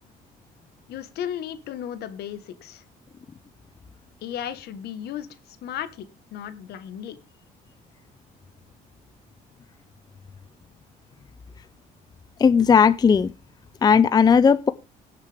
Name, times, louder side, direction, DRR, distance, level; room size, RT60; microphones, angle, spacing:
voice 1, 0.9-2.8 4.2-7.2, left 10 dB, 70° left, 1.4 m, -35 dB
voice 2, 12.4-13.3 13.8-14.7, left 6 dB, 25° left, 0.5 m, -16 dB
19.0 x 6.6 x 3.5 m
cardioid pair, 110°, 17 cm